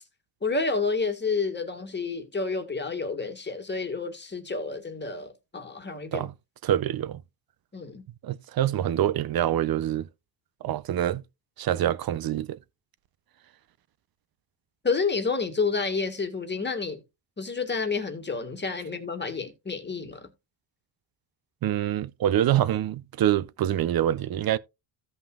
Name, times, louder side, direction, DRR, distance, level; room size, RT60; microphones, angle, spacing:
voice 1, 0.4-6.3 7.7-8.0 14.8-17.0 17.4-20.3, left 4 dB, 20° left, 1.8 m, -29 dB
voice 2, 6.6-7.2 8.2-10.1 10.6-11.2 11.6-12.6 21.6-24.6, right 11 dB, 45° right, 0.6 m, -25 dB
15.5 x 5.6 x 2.4 m
cardioid pair, 100°, 50 cm